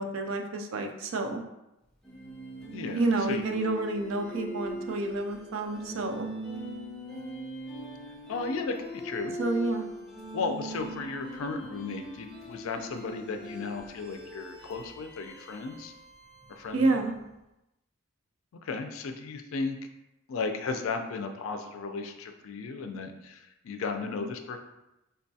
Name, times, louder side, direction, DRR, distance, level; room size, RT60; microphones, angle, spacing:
voice 1, 0.0-1.4 3.0-6.3 9.4-9.9 16.7-17.1, right 2 dB, 65° right, 4 dB, 0.4 m, -29 dB
sound 1, 2.0-17.1, right 1 dB, ahead, 0.5 m, -41 dB
voice 2, 8.3-9.4 10.3-15.9 16.5-17.0 18.6-19.8 20.3-24.6, left 4 dB, 70° left, 6 dB, 0.4 m, -35 dB
3.8 x 2.2 x 2.6 m, 0.94 s
head